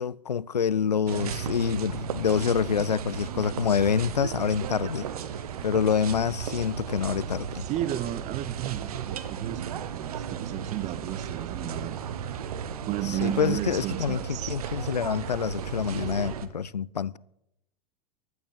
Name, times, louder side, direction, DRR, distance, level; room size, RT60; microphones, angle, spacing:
voice 1, 0.0-5.1 5.6-7.7 13.2-14.2 14.5-17.2, left 7 dB, 85° left, 0.5 m, -27 dB
sound 1, 1.1-16.5, right 8 dB, 65° right, 1.2 m, -35 dB
voice 2, 7.6-12.0 12.8-14.6, right 13 dB, 35° right, 0.7 m, -33 dB
15.5 x 11.0 x 6.9 m
figure-of-eight pair, 90°, 20 cm